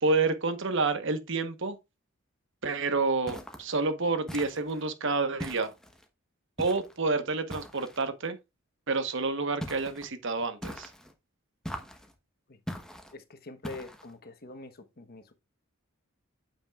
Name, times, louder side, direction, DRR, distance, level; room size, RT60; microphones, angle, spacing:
voice 1, 0.0-1.8 2.6-5.7 6.6-8.4 8.9-10.9, right 3 dB, 60° right, 1.1 m, -29 dB
sound 1, 3.3-3.7 4.3-4.9 5.4-6.1 6.6-7.0 7.5-8.1 9.6-10.1 10.6-11.1 11.6-12.1 12.7-13.1 13.6-14.1, equal, 5° left, 1.0 m, -41 dB
voice 2, 13.1-15.3, left 2 dB, 45° left, 1.1 m, -44 dB
8.7 x 7.3 x 2.4 m
head